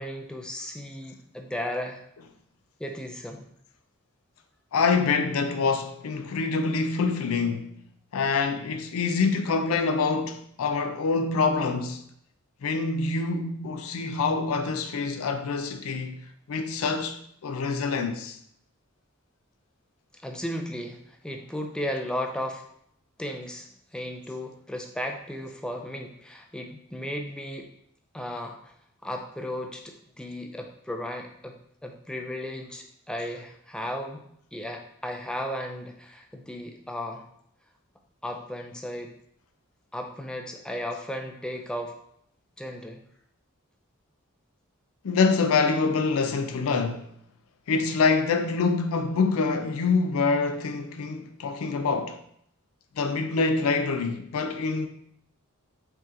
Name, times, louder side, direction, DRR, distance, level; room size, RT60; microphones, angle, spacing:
voice 1, 0.0-2.0 2.8-3.5 20.1-22.6 23.2-27.7 28.1-28.7 29.0-34.2 34.5-37.2 38.2-39.1 39.9-42.0 42.6-43.0, left 1 dB, 5° left, 0.3 m, -35 dB
voice 2, 4.7-7.7 8.1-12.0 12.6-16.2 16.5-18.4 45.0-47.0 47.7-52.2 53.0-54.9, left 4 dB, 80° left, 0.4 m, -25 dB
4.5 x 2.8 x 2.5 m
head